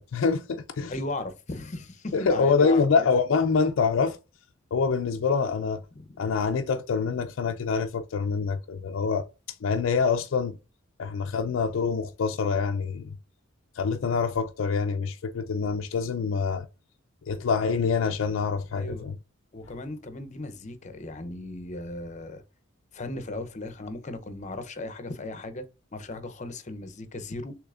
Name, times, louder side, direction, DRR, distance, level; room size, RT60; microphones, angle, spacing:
voice 1, 0.0-0.9 2.1-4.2 4.7-5.8 6.2-9.2 9.6-10.6 11.0-13.1 13.8-16.7 17.3-19.1, left 5 dB, 75° left, 0.4 m, -25 dB
voice 2, 0.9-3.0 5.9-6.1 18.8-19.0 19.5-22.4 22.9-25.6 25.9-27.6, left 2 dB, 35° left, 0.7 m, -36 dB
6.5 x 3.1 x 2.5 m
head